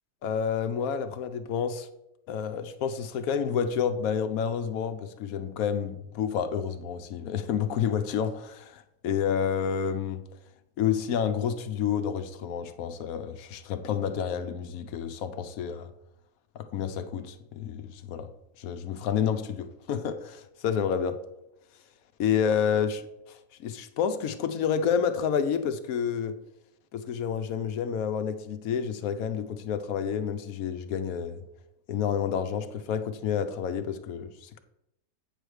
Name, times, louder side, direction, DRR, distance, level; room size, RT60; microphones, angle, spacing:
voice 1, 0.2-1.9 2.3-10.2 10.8-15.9 16.6-18.3 18.6-21.1 22.2-23.0 23.3-26.4 26.9-31.4 31.9-34.6, left 7 dB, 75° left, 1.1 m, -29 dB
8.4 x 3.3 x 6.3 m
omnidirectional pair, 1.6 m